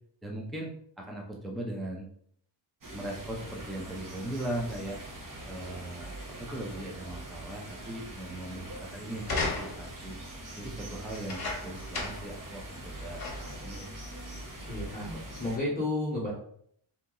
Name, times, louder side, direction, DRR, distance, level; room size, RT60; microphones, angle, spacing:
voice 1, 0.2-2.1 2.9-5.0 5.5-10.2 10.6-13.9, right 1 dB, ahead, 0 dB, 0.5 m, -39 dB
sound 1, 2.8-15.6, right 1 dB, 40° right, 1.1 m, -43 dB
sound 2, 9.2-10.0 11.1-12.4 12.7-12.8 13.2-13.6 14.4-14.5, left 3 dB, 50° left, 1.1 m, -34 dB
voice 2, 14.6-16.3, left 2 dB, 15° left, -6 dB, 1.0 m, -32 dB
4.1 x 2.9 x 3.8 m, 0.65 s
wide cardioid pair, 170°, 49 cm